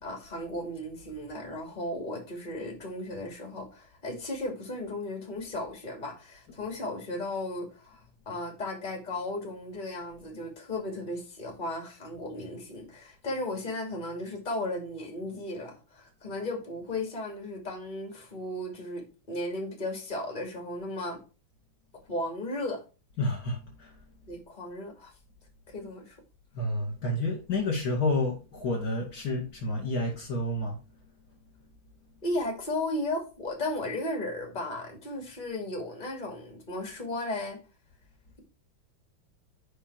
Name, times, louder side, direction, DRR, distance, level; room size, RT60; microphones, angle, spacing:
voice 1, 0.0-21.2 22.1-22.8 24.3-25.1 25.7-26.2 32.2-37.6, left 1 dB, 25° left, 2.5 m, -35 dB
voice 2, 23.2-23.9 26.5-30.8, left 2 dB, 55° left, 2.6 m, -30 dB
8.2 x 5.3 x 4.6 m
omnidirectional pair, 2.2 m